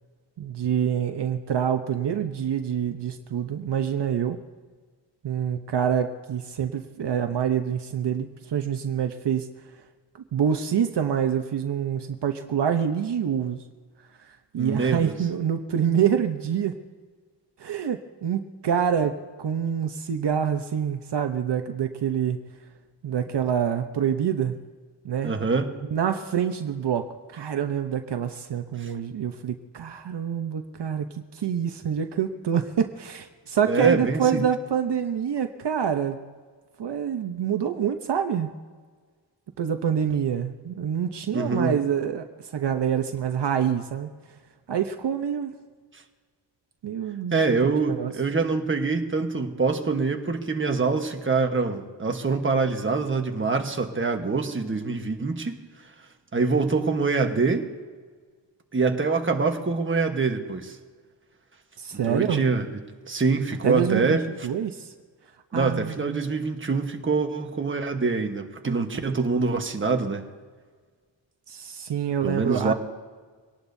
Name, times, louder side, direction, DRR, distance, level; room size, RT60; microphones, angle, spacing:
voice 1, 0.4-4.4 5.2-9.5 10.3-13.6 14.2-16.7 17.6-22.4 23.0-24.6 25.0-25.3 25.9-36.2 36.8-38.5 39.6-44.1 44.7-45.5 46.8-47.4 47.9-48.1 61.8-62.4 63.6-64.2 64.4-64.9 65.5-66.2 68.6-69.0 71.5-72.7, right 8 dB, 65° right, 7 dB, 0.9 m, -26 dB
voice 2, 14.6-15.1 25.2-25.7 28.8-28.9 33.6-34.4 41.3-41.7 45.9-46.0 47.3-55.6 56.3-57.7 58.7-60.8 62.1-62.7 63.1-64.2 65.5-70.3 72.2-72.7, right 4 dB, 25° right, 4 dB, 1.3 m, -25 dB
24.0 x 18.5 x 2.7 m, 1.5 s
wide cardioid pair, 140°, 45 cm